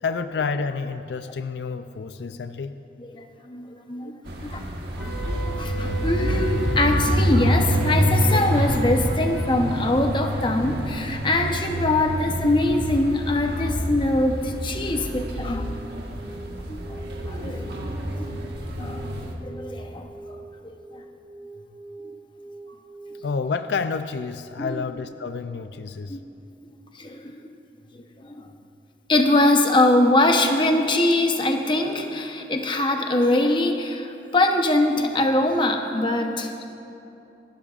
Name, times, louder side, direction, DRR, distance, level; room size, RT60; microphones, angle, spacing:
voice 1, 0.0-2.8 23.2-26.2, left 5 dB, 75° left, 10 dB, 0.4 m, -29 dB
voice 2, 3.0-4.6 5.3-15.7 16.7-17.7 18.2-18.3 18.8-19.0 19.4-21.0 24.6-24.8 26.1-26.2 26.6-27.4 27.9-28.5 29.1-36.7, left 2 dB, 30° left, 4 dB, 0.8 m, -23 dB
sound 1, 4.2-19.3, equal, 70° right, 1.4 m, -27 dB
Wind instrument woodwind instrument, 5.0-9.5, right 2 dB, ahead, 1.5 m, -36 dB
sound 2, 14.8-23.2, right 2 dB, 15° right, 3.6 m, -43 dB
25.0 x 12.0 x 2.5 m, 2.8 s
head